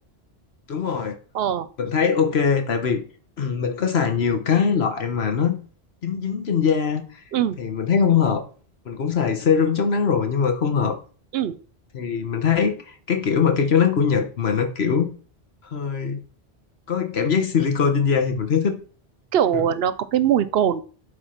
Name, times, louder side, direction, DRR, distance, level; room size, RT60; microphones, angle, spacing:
voice 1, 0.7-1.2 1.8-3.0 3.4-5.5 6.0-7.1 7.6-8.4 8.9-11.0 11.9-15.1 15.6-16.2 16.9-18.8 19.5-19.6, left 6 dB, 70° left, 6 dB, 1.4 m, -21 dB
voice 2, 1.3-1.7 7.3-7.6 11.3-11.6 19.3-20.8, right 9 dB, 70° right, 15 dB, 0.8 m, -21 dB
8.0 x 4.1 x 5.8 m, 0.39 s
omnidirectional pair, 1.1 m